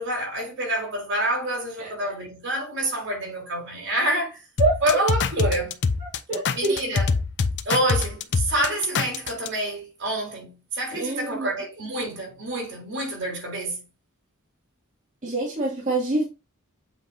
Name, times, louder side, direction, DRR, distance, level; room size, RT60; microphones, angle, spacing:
voice 1, 0.0-4.4 4.8-5.8 6.5-7.1 7.7-13.8, right 1 dB, 60° right, 3.5 m, -27 dB
sound 1, 4.6-9.5, left 5 dB, 55° left, 0.6 m, -24 dB
voice 2, 6.0-6.7 10.9-11.5 15.2-16.2, right 2 dB, 35° right, 2.3 m, -25 dB
7.9 x 4.7 x 2.7 m
head